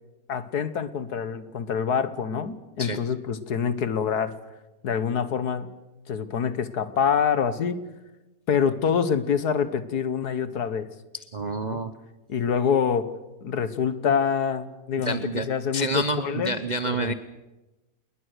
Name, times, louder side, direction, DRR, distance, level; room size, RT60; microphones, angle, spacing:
voice 1, 0.3-4.3 4.8-5.7 6.1-7.8 8.5-10.9 11.6-11.8 12.3-13.1 13.4-15.2 15.5-16.5 16.8-17.1, left 7 dB, 65° left, 13 dB, 1.8 m, -26 dB
voice 2, 11.3-11.9 15.0-15.5 15.7-17.1, right 2 dB, 45° right, 11 dB, 0.6 m, -28 dB
28.0 x 20.5 x 6.6 m, 1.1 s
omnidirectional pair, 1.9 m